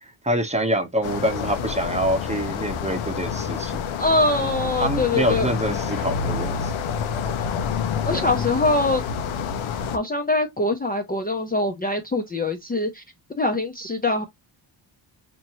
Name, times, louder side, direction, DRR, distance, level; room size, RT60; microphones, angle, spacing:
voice 1, 0.2-3.9 4.4-4.5 4.8-6.7 8.1-8.3, right 1 dB, 15° right, 0.9 m, -26 dB
sound 1, 1.0-10.0, left 6 dB, 90° left, 0.8 m, -28 dB
voice 2, 4.0-5.5 8.0-9.0 9.9-13.0 13.4-14.2, left 2 dB, 20° left, 0.6 m, -23 dB
4.3 x 2.7 x 2.9 m
cardioid pair, 100°, 47 cm